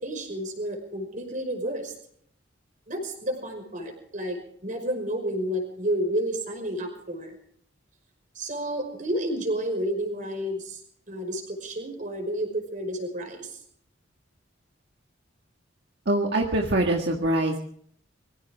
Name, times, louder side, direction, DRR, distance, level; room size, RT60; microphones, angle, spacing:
voice 1, 0.0-1.9 2.9-7.3 8.4-10.8 11.1-13.6, right 1 dB, 40° right, 3 dB, 5.5 m, -31 dB
voice 2, 16.1-17.6, right 1 dB, 60° right, 1 dB, 1.8 m, -24 dB
24.0 x 15.5 x 3.6 m, 0.63 s
head